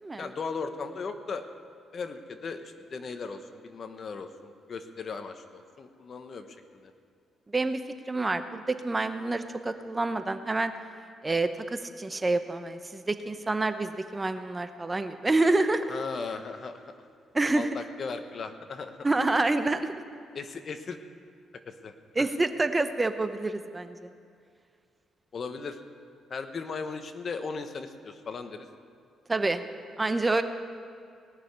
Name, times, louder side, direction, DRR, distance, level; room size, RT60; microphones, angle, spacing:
voice 1, 0.2-1.5 1.9-6.5 6.7-6.9 15.9-16.8 17.5-19.1 20.3-21.0 21.7-22.3 25.3-25.8 26.3-28.7, left 4 dB, 50° left, 8 dB, 1.1 m, -37 dB
voice 2, 8.1-10.7 11.2-15.8 17.3-17.7 19.0-19.9 22.2-24.1 29.3-29.6 30.0-30.4, right 2 dB, 20° right, 9 dB, 0.8 m, -27 dB
19.0 x 6.7 x 9.6 m, 2.4 s
cardioid pair, 90°, 0 cm